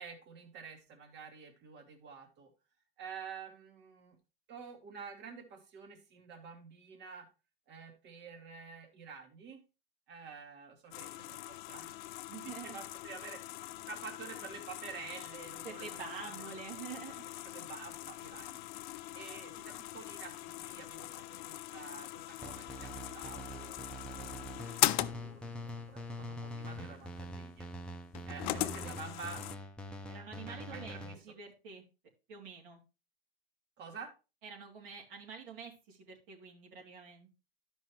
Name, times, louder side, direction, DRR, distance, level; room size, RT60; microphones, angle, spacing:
voice 1, 0.0-2.5 3.0-4.2 4.5-7.3 7.7-9.6 10.1-12.0 12.4-16.5 17.4-18.6 19.1-27.7 28.3-29.6 30.3-31.2 33.8-34.1, right 5 dB, 35° right, 4 dB, 1.9 m, -49 dB
sound 1, 10.9-29.6, left 16 dB, 50° left, 0.5 m, -41 dB
voice 2, 12.3-12.8 15.6-17.3 30.1-31.0 31.2-31.8 32.3-32.8 34.4-37.3, right 5 dB, 60° right, -2 dB, 2.9 m, -47 dB
sound 2, 22.4-31.1, equal, 5° left, 0.8 m, -44 dB
12.5 x 5.4 x 3.1 m, 0.30 s
hypercardioid pair, 105°, 30 cm